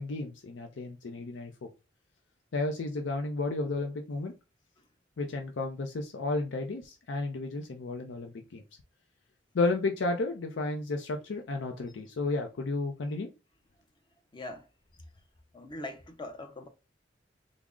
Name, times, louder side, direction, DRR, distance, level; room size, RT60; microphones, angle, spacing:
voice 1, 0.0-1.7 2.5-4.3 5.2-8.6 9.5-13.3, left 2 dB, 80° left, 0.5 m, -32 dB
voice 2, 14.3-14.7 14.9-15.0 15.5-16.7, left 1 dB, 25° left, 0.6 m, -42 dB
3.5 x 2.0 x 3.6 m
head